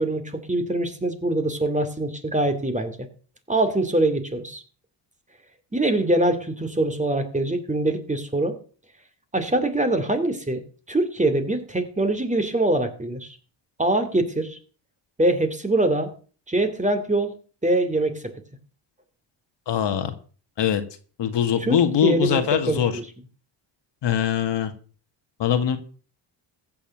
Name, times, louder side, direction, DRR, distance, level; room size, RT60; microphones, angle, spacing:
voice 1, 0.0-3.0 3.5-4.6 5.7-8.6 9.3-10.6 10.9-13.4 13.8-14.6 15.2-16.1 16.5-17.3 17.6-18.3 21.6-23.0, right 2 dB, 15° right, 8 dB, 2.5 m, -23 dB
voice 2, 19.7-20.1 20.6-20.8 21.2-22.9 24.0-24.7 25.4-25.8, left 9 dB, 60° left, 8 dB, 1.9 m, -22 dB
15.0 x 7.1 x 6.5 m, 0.40 s
cardioid pair, 85°, 47 cm